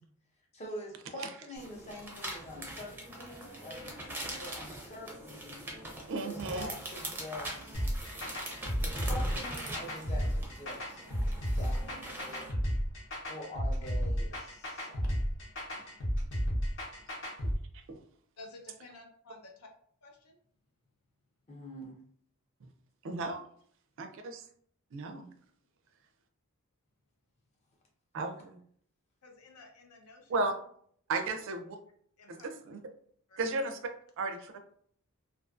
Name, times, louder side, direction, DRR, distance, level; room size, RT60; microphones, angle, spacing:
voice 1, 0.5-3.8 4.2-5.6 6.2-7.9 8.8-11.0 11.5-11.9 12.2-12.4 13.3-15.0 15.7-15.9 21.5-22.0, left 1 dB, 30° left, -1 dB, 0.7 m, -45 dB
sound 1, 1.6-12.5, right 1 dB, 10° right, 0.5 m, -42 dB
voice 2, 3.9-4.4 8.5-8.6 14.3-14.5 15.0-15.1 18.4-19.7 20.0-20.4 29.2-30.4 31.2-31.3 32.2-32.5 33.3-33.4, left 3 dB, 85° left, 2 dB, 0.6 m, -53 dB
voice 3, 6.1-6.7 17.4-18.0 22.6-22.7 23.0-23.4 24.0-24.4 24.9-25.3 28.1-28.6 30.3-30.5 31.1-31.8 32.3-32.8 33.4-33.8 34.2-34.5, right 3 dB, 60° right, 6 dB, 0.4 m, -35 dB
sound 2, 7.7-17.5, equal, 60° left, 0.9 m, -32 dB
2.4 x 2.4 x 2.4 m, 0.62 s
head